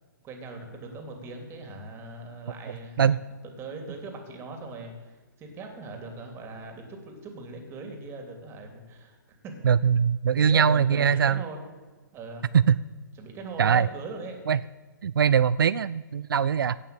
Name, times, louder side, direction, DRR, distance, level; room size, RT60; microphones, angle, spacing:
voice 1, 0.2-9.5 10.4-11.6 12.1-12.4 13.2-14.4, right 3 dB, 20° right, 4 dB, 2.9 m, -40 dB
voice 2, 9.6-11.4 12.5-12.8 13.6-13.9 14.5-14.6 15.0-16.8, right 7 dB, 80° right, 16 dB, 0.4 m, -21 dB
16.5 x 6.5 x 8.8 m, 1.4 s
hypercardioid pair, 135°, 11 cm